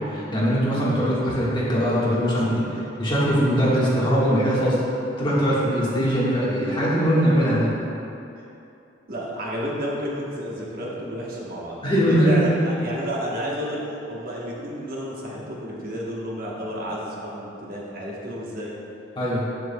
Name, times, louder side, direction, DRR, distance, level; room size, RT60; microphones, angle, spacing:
voice 1, 0.1-2.6 3.0-4.8 5.2-7.7 11.8-12.5 19.2-19.4, equal, 25° left, -8 dB, 1.4 m, -21 dB
voice 2, 2.5-2.8 8.4-8.5 9.1-13.8 14.1-18.7, equal, 55° right, -4 dB, 1.1 m, -31 dB
7.7 x 7.6 x 2.2 m, 2.8 s
head